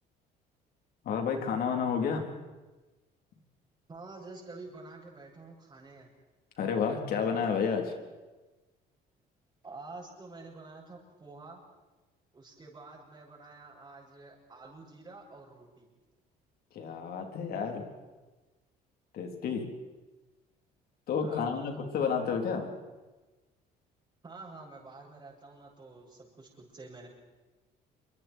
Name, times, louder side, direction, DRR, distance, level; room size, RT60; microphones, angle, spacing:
voice 1, 1.0-2.2 6.6-7.9 16.7-17.8 19.1-19.6 21.1-22.7, left 6 dB, 65° left, 3 dB, 3.9 m, -30 dB
voice 2, 3.9-6.1 9.6-11.6 12.3-15.9 21.2-21.9 24.2-27.1, right 3 dB, 25° right, -7 dB, 6.8 m, -48 dB
27.5 x 24.5 x 4.7 m, 1.2 s
cardioid pair, 110°, 17 cm